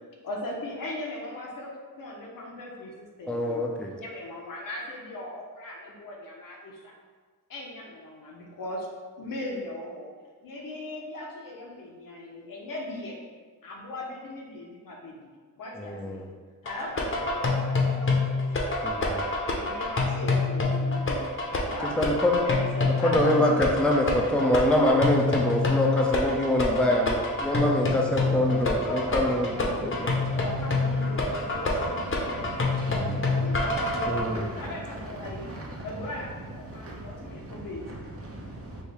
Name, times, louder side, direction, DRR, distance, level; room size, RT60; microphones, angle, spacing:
voice 1, 0.2-6.9 7.5-8.9 9.2-10.1 10.4-13.2 13.6-15.3 15.6-16.2 16.6-19.2 19.6-21.3 21.7-23.9 28.8-30.0 30.3-33.1 33.4-35.5 35.8-37.8, left 1 dB, 70° left, -1 dB, 0.9 m, -39 dB
voice 2, 3.3-3.9 15.8-16.3 18.8-19.0 22.0-22.3 23.0-30.0 32.9-33.3 34.1-34.4, left 1 dB, 5° left, -1 dB, 0.6 m, -25 dB
sound 1, 16.7-34.2, left 3 dB, 35° left, 0.8 m, -27 dB
voice 3, 28.3-38.8, right 1 dB, 40° right, -2 dB, 1.0 m, -40 dB
4.5 x 2.7 x 3.4 m, 1.5 s
cardioid pair, 75°, 35 cm